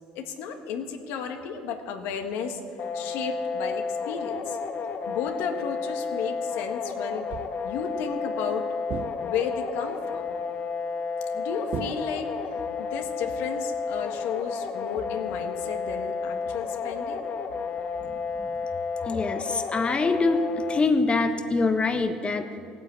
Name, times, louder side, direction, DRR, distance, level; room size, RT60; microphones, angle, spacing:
voice 1, 0.1-2.6 2.9-4.6 5.1-7.3 7.6-8.7 9.2-10.2 11.3-12.3 12.8-17.3, left 6 dB, 75° left, 5 dB, 1.6 m, -33 dB
sound 1, 2.8-20.8, left 5 dB, 50° left, 1.4 m, -32 dB
sound 2, 7.3-7.8 8.9-9.7 11.7-12.6, right 8 dB, 55° right, 0.5 m, -38 dB
voice 2, 18.0-18.6 19.0-22.6, left 3 dB, 30° left, 7 dB, 1.2 m, -25 dB
17.5 x 9.4 x 8.3 m, 2.6 s
hypercardioid pair, 70°, 4 cm